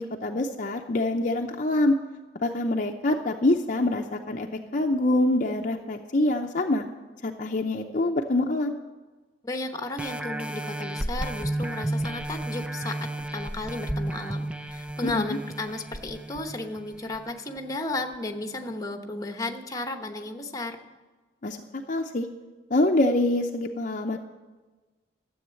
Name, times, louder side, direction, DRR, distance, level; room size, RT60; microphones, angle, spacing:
voice 1, 0.0-1.9 2.4-4.5 4.7-6.9 7.2-8.8 15.0-15.4 21.4-21.6 21.9-22.3 22.7-24.2, left 2 dB, 45° left, 4 dB, 0.6 m, -25 dB
voice 2, 9.4-20.8, left 2 dB, 20° left, 5 dB, 1.0 m, -34 dB
sound 1, 10.0-17.2 17.7-17.8, right 1 dB, 5° right, 0.5 m, -33 dB
13.0 x 7.9 x 7.6 m, 1.3 s
head